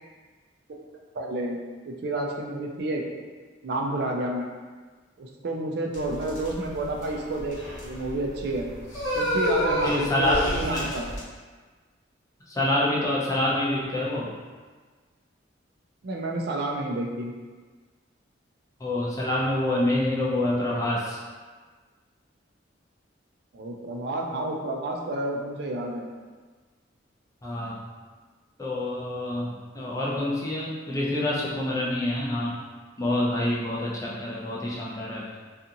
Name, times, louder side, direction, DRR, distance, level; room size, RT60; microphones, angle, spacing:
voice 1, 1.1-1.6 1.9-3.0 3.6-4.5 5.2-7.6 7.8-8.7 9.1-11.1 16.0-17.3 23.5-26.1, right 2 dB, 55° right, 0 dB, 0.4 m, -30 dB
sound 1, 5.9-11.2, equal, 75° left, 1.0 m, -29 dB
voice 2, 9.8-10.9 12.5-14.3 18.8-21.2 27.4-27.8 28.6-32.5 33.0-35.4, left 1 dB, 15° left, -6 dB, 0.4 m, -27 dB
2.5 x 2.4 x 2.7 m, 1.4 s
head